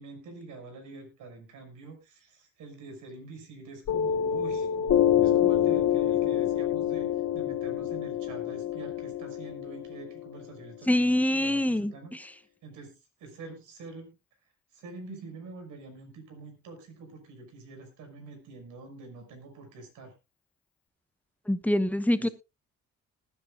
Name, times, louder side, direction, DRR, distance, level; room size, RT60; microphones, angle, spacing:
voice 1, 0.0-12.2 12.6-14.1 14.7-20.1 22.2-22.3, right 3 dB, 85° right, 5 dB, 5.8 m, -46 dB
Piano, 3.9-10.9, left 10 dB, 65° left, 1.9 m, -27 dB
voice 2, 10.9-11.9 21.5-22.3, left 1 dB, 5° left, 11 dB, 1.2 m, -24 dB
20.5 x 10.0 x 2.4 m, 0.25 s
cardioid pair, 90°, 30 cm